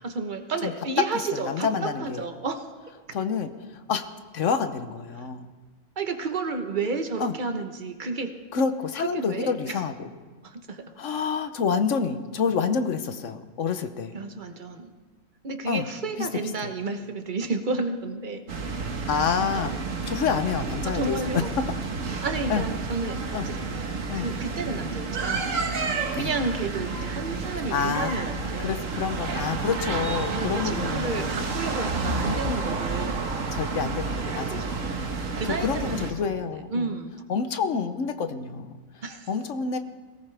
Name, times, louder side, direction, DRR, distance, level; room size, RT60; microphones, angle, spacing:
voice 1, 0.0-2.7 5.2-5.3 6.0-8.3 9.0-9.8 10.4-10.9 14.1-14.9 15.4-18.4 18.8-19.1 19.5-19.8 20.8-21.5 22.2-23.8 24.1-25.6 26.1-28.8 30.3-33.3 34.5-34.9 35.3-35.9 36.7-37.1 39.0-39.3, right 3 dB, 40° right, 7 dB, 1.2 m, -31 dB
voice 2, 1.3-2.2 3.1-4.1 4.3-5.5 7.2-7.3 8.5-10.1 11.0-14.2 15.6-15.9 16.2-16.3 16.6-16.7 19.1-19.7 20.1-21.4 22.5-22.6 23.3-23.5 24.1-24.3 26.2-26.3 27.7-28.1 28.6-31.3 32.1-32.5 33.5-34.7 35.6-36.9 37.3-39.8, left 6 dB, 70° left, 9 dB, 1.2 m, -28 dB
sound 1, 18.5-36.1, right 4 dB, 75° right, 1.7 m, -30 dB
22.0 x 18.0 x 3.4 m, 1.4 s
omnidirectional pair, 1.4 m